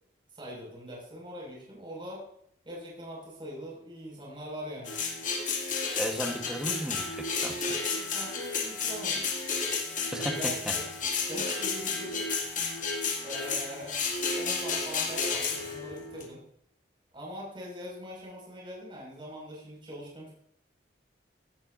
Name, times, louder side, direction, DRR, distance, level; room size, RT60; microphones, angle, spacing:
voice 1, 0.3-2.2 2.7-4.9 7.7-9.5 10.1-10.9 11.3-12.4 13.2-14.0 14.4-16.4 17.1-20.3, equal, 30° right, -3 dB, 5.3 m, -42 dB
sound 1, 4.8-16.3, left 4 dB, 45° left, 2.2 m, -32 dB
voice 2, 6.0-7.8 10.1-10.8, equal, 5° right, 3 dB, 1.1 m, -35 dB
16.5 x 12.0 x 2.6 m, 0.69 s
head